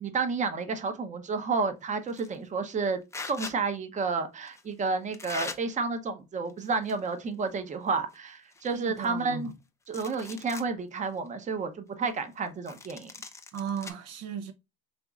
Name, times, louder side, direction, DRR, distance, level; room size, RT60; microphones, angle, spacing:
voice 1, 0.0-9.5 9.9-13.1, right 4 dB, 25° right, 0.8 m, -31 dB
sound 1, 2.1-2.4 3.1-3.6 4.5-4.6 5.1-5.6 6.5-7.1 7.4-7.5 8.1-8.2 8.5-9.5 9.8-10.7 11.2-11.3 12.7-13.9, left 3 dB, 10° left, 0.5 m, -41 dB
voice 2, 8.7-9.5 13.5-14.5, right 7 dB, 60° right, 0.7 m, -36 dB
5.1 x 3.0 x 2.3 m
cardioid pair, 125°, 29 cm